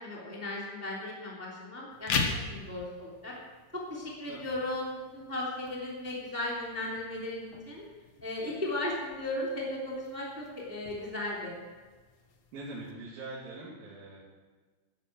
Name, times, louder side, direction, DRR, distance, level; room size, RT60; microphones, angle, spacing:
voice 1, 0.0-3.3 3.7-7.8 8.2-11.6, left 1 dB, 5° right, -4 dB, 2.5 m, -36 dB
sound 1, 1.9-12.9, left 5 dB, 55° left, 2.0 m, -41 dB
voice 2, 4.3-4.6 12.5-14.2, right 2 dB, 65° right, -9 dB, 4.5 m, -43 dB
14.0 x 11.0 x 6.3 m, 1.4 s
omnidirectional pair, 4.5 m